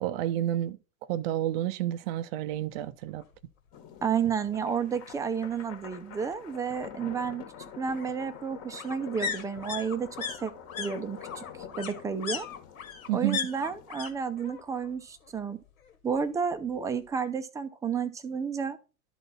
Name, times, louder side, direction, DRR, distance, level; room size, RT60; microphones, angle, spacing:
voice 1, 0.0-0.8 1.1-3.2 13.1-13.4, right 13 dB, 45° right, 0.6 m, -30 dB
sound 1, 3.2-3.3 3.7-5.0 6.3-14.1 14.4-14.9 15.2-16.3 16.6-16.7, left 6 dB, 70° left, 1.5 m, -39 dB
sound 2, 3.7-13.9, left 8 dB, 35° left, 1.3 m, -47 dB
voice 2, 4.0-7.4 7.8-10.5 10.8-11.4 11.8-12.5 13.1-15.6 16.0-18.8, right 6 dB, 10° right, 0.6 m, -31 dB
11.5 x 4.0 x 3.9 m
figure-of-eight pair, 95°, 42 cm